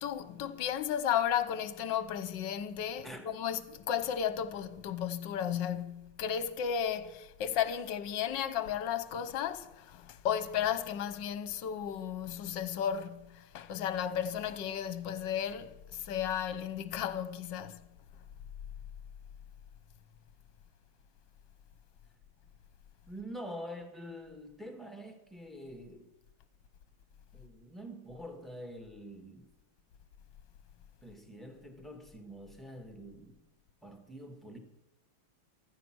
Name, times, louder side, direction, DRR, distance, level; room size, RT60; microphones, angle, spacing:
voice 1, 0.0-17.8, left 9 dB, 65° left, 1.5 m, -34 dB
voice 2, 23.1-26.1 27.3-29.5 31.0-33.4 33.8-34.6, equal, ahead, 1.7 m, -46 dB
15.0 x 12.5 x 6.1 m
omnidirectional pair, 2.2 m